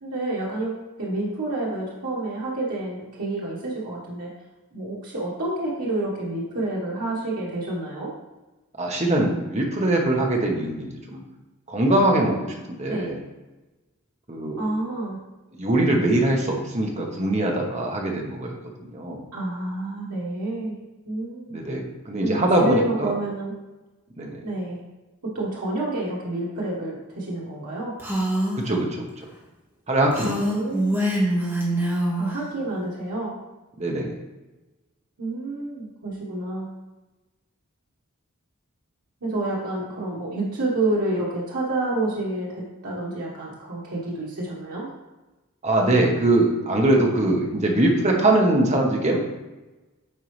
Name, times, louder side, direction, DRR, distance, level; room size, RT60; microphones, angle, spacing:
voice 1, 0.0-4.3 4.7-8.1 12.9-13.1 14.6-15.2 19.3-20.8 21.0-21.6 22.2-23.5 24.4-24.8 25.2-27.9 30.2-31.0 32.2-33.4 35.2-36.7 39.2-44.9, right 2 dB, 80° right, -6 dB, 1.4 m, -29 dB
voice 2, 8.8-11.2 11.7-13.2 14.3-14.6 15.6-18.5 18.9-19.2 21.5-23.1 24.2-24.4 28.5-29.1 29.9-30.3 33.8-34.1 45.6-49.2, right 1 dB, 30° right, 1 dB, 1.0 m, -22 dB
Female speech woman speaking, 28.0-28.6 30.1-32.4, right 1 dB, 10° right, 1.5 m, -24 dB
9.2 x 4.5 x 3.2 m, 1.1 s
head